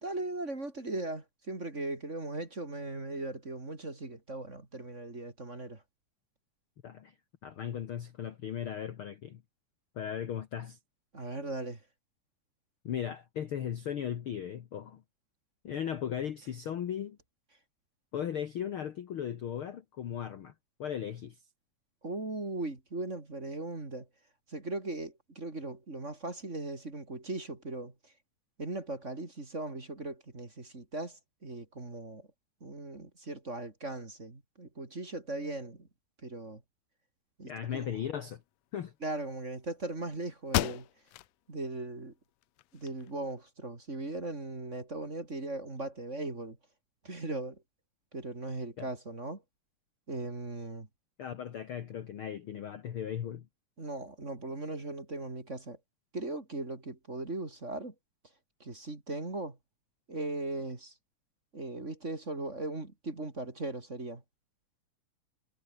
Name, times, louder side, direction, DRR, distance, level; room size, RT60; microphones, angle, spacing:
voice 1, 0.0-5.8 11.1-11.8 22.0-24.1 24.5-28.1 28.6-32.3 32.6-35.9 36.2-36.6 37.4-37.9 39.0-40.9 41.5-42.1 42.7-46.6 47.0-47.6 48.1-49.4 50.1-50.9 53.8-55.8 56.1-57.9 58.6-59.6 60.1-60.9 61.5-64.2, right 2 dB, 20° right, 3.1 m, -38 dB
voice 2, 6.8-7.1 7.4-9.4 9.9-10.8 12.8-15.0 15.6-17.2 18.1-20.5 20.8-21.4 37.5-38.4 38.7-38.9 48.8-48.9 51.2-53.5, left 9 dB, 55° left, 1.6 m, -37 dB
sound 1, 39.9-40.0 40.5-41.3 41.8-41.9 42.4-43.3, left 17 dB, 80° left, 1.5 m, -34 dB
omnidirectional pair, 3.7 m